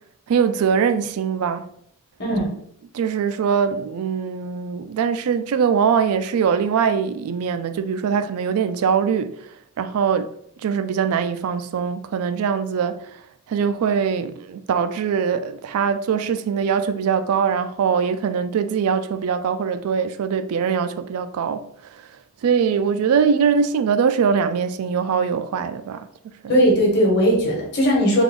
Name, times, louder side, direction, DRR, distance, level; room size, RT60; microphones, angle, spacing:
voice 1, 0.3-1.7 2.9-9.3 9.8-10.3 10.6-13.1 13.5-21.6 21.9-22.0 22.4-26.1 26.4-26.5, right 6 dB, 85° right, 0.3 m, -22 dB
voice 2, 26.5-28.2, equal, 50° left, 1.2 m, -18 dB
3.5 x 2.5 x 3.5 m
head